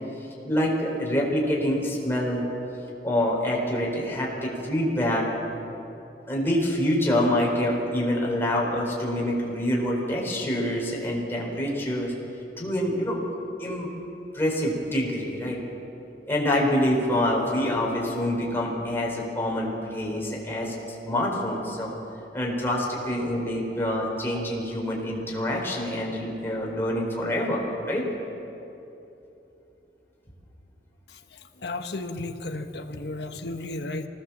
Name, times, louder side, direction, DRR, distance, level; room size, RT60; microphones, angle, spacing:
voice 1, 0.4-2.4 3.0-5.3 6.3-12.1 12.6-13.2 13.6-13.9 14.3-15.6 16.3-20.7 21.0-21.9 22.3-28.1, left 1 dB, 15° left, -2 dB, 4.8 m, -26 dB
voice 2, 31.6-34.1, left 2 dB, 70° left, 6 dB, 1.4 m, -33 dB
24.5 x 18.5 x 7.4 m, 2.9 s
head